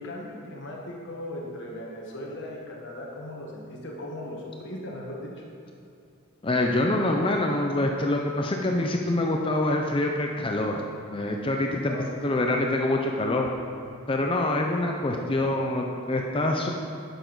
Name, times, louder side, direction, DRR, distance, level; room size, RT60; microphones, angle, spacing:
voice 1, 0.0-5.3 11.8-12.3, left 1 dB, 55° left, -2 dB, 1.2 m, -38 dB
voice 2, 6.4-10.8 11.1-11.9 12.2-13.5 14.1-16.7, left 1 dB, 25° left, 1 dB, 0.5 m, -25 dB
10.5 x 7.0 x 3.9 m, 2.6 s
head